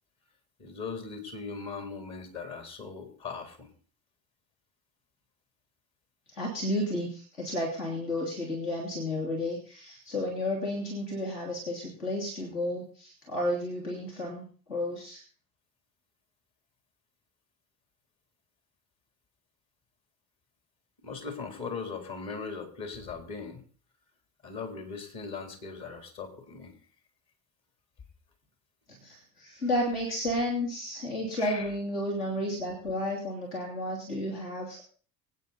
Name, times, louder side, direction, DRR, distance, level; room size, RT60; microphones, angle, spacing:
voice 1, 0.6-3.7 21.0-23.6 24.4-26.7 31.4-31.7, left 5 dB, 50° left, 5 dB, 3.7 m, -39 dB
voice 2, 6.3-15.2 29.0-34.8, left 1 dB, 75° left, -2 dB, 3.2 m, -32 dB
25.0 x 9.2 x 4.2 m, 0.41 s
figure-of-eight pair, 55°, 46 cm